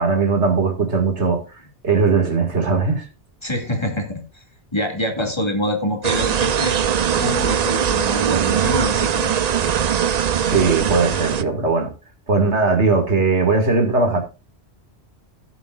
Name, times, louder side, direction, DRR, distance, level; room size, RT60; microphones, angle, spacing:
voice 1, 0.0-1.4 1.8-3.1 10.4-11.9 12.3-14.2, right 4 dB, 80° right, 2.5 m, -19 dB
voice 2, 3.4-4.4 4.7-6.8 7.1-9.3, left 1 dB, 25° left, 2.4 m, -26 dB
sound 1, 6.0-11.4, right 8 dB, 50° right, 0.5 m, -20 dB
18.0 x 7.2 x 2.5 m
omnidirectional pair, 1.1 m